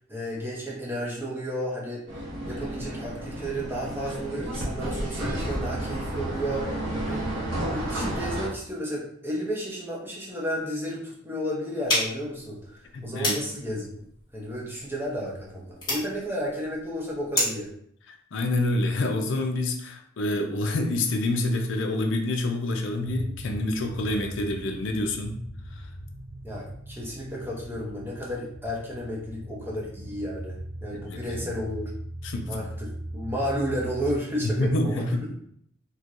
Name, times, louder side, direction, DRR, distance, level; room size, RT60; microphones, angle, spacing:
voice 1, 0.1-2.0 2.5-6.8 7.0-7.3 7.7-12.6 13.0-13.9 14.3-17.7 26.4-31.9 32.5-35.1, equal, 10° right, -4 dB, 0.7 m, -32 dB
sound 1, 2.1-8.5, right 1 dB, 85° right, 1.0 m, -31 dB
sound 2, 11.8-17.7, left 1 dB, 20° left, 1.4 m, -31 dB
voice 2, 12.9-13.4 18.1-25.4 25.7-25.8 30.9-31.5 32.2-32.6 34.4-35.3, left 2 dB, 65° left, 4 dB, 0.5 m, -27 dB
sound 3, 23.0-34.2, right 1 dB, 50° right, 0.6 m, -40 dB
4.3 x 2.2 x 2.5 m, 0.67 s
head